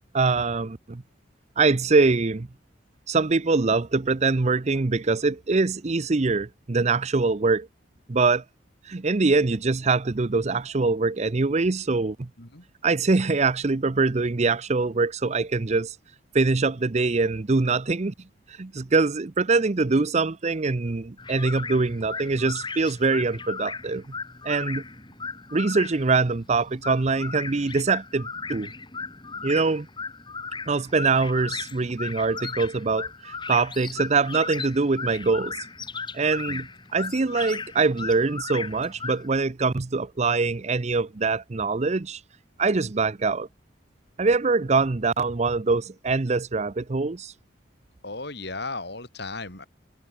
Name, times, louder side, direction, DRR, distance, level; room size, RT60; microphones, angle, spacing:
voice 1, 0.1-1.0 1.6-2.5 3.1-7.7 8.1-8.4 8.9-12.3 12.8-15.9 16.3-18.1 18.5-24.0 24.4-24.8 25.5-28.7 29.4-29.9 30.7-35.5 36.1-36.7 36.9-42.2 42.6-43.5 44.2-47.3, right 3 dB, 35° right, 0.6 m, -23 dB
sound 1, 21.2-39.3, left 4 dB, 25° left, 3.7 m, -36 dB
voice 2, 48.0-49.7, left 3 dB, 60° left, 7.3 m, -35 dB
head